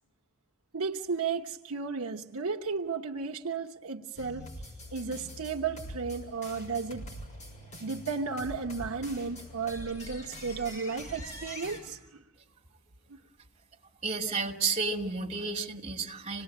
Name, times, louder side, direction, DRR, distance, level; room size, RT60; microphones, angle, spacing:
voice 1, 0.7-4.5 4.9-7.1 7.8-12.0, right 5 dB, 80° right, 3 dB, 1.1 m, -34 dB
sound 1, 4.2-11.8, equal, 35° left, 6.6 m, -44 dB
voice 2, 14.0-16.4, right 4 dB, 30° right, 1 dB, 2.7 m, -31 dB
26.5 x 19.0 x 8.6 m, 1.1 s
head